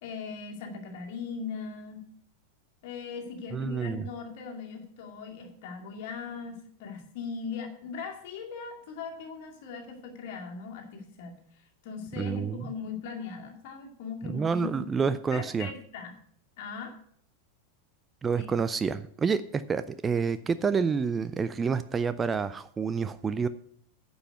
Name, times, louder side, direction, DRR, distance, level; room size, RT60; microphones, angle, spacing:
voice 1, 0.0-2.0 2.8-11.4 11.8-14.8 15.3-16.2 16.6-16.9 18.3-18.5, left 5 dB, 50° left, 2 dB, 2.3 m, -39 dB
voice 2, 3.5-4.1 12.2-12.6 14.2-15.7 18.2-23.5, right 5 dB, 20° right, 13 dB, 0.4 m, -28 dB
9.8 x 5.5 x 7.9 m, 0.63 s
figure-of-eight pair, 90°, 0 cm